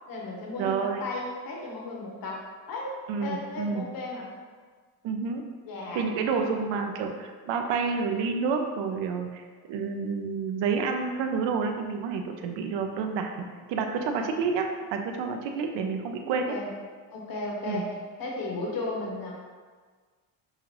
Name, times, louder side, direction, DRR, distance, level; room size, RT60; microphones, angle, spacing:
voice 1, 0.1-2.4 2.7-2.9 3.2-4.3 5.6-6.0 6.3-6.5 16.5-16.7 17.1-17.9 18.2-19.3, left 2 dB, 50° left, -2 dB, 1.1 m, -34 dB
voice 2, 0.6-1.0 3.1-3.9 5.0-5.4 5.9-13.4 13.7-16.6 17.7-17.8, right 5 dB, 70° right, 4 dB, 0.6 m, -29 dB
5.6 x 2.5 x 2.9 m, 1.5 s
cardioid pair, 130°, 46 cm